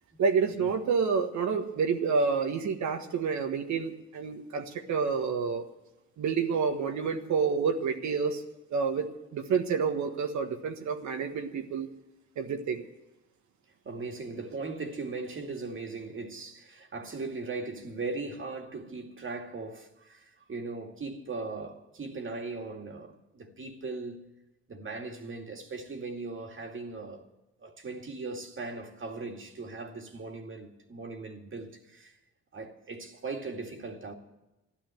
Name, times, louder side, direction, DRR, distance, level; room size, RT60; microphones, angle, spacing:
voice 1, 0.2-5.7 6.2-8.4 8.7-9.1 9.3-11.9 12.4-12.8, right 5 dB, 70° right, 1.5 m, -29 dB
voice 2, 13.8-24.3 24.7-27.2 27.6-32.1 32.5-34.1, right 3 dB, 40° right, 2.3 m, -39 dB
13.5 x 11.5 x 7.7 m
cardioid pair, 90°, 30 cm